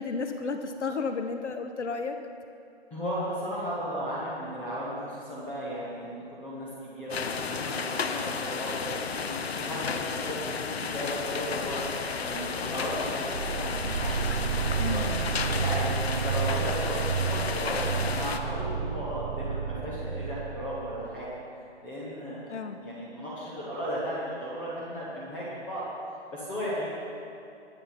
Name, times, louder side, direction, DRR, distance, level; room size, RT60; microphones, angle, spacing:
voice 1, 0.0-2.2 14.8-15.0 22.5-22.8, left 4 dB, 85° left, 6 dB, 1.1 m, -32 dB
voice 2, 2.9-11.8 12.2-21.3 21.8-22.4 22.8-25.8 26.3-26.9, equal, 5° left, -9 dB, 0.6 m, -35 dB
sound 1, 7.1-18.4, left 5 dB, 60° left, 1.0 m, -33 dB
sound 2, 13.3-21.2, right 6 dB, 35° right, 0.4 m, -31 dB
22.0 x 8.7 x 4.3 m, 2.6 s
hypercardioid pair, 160°, 34 cm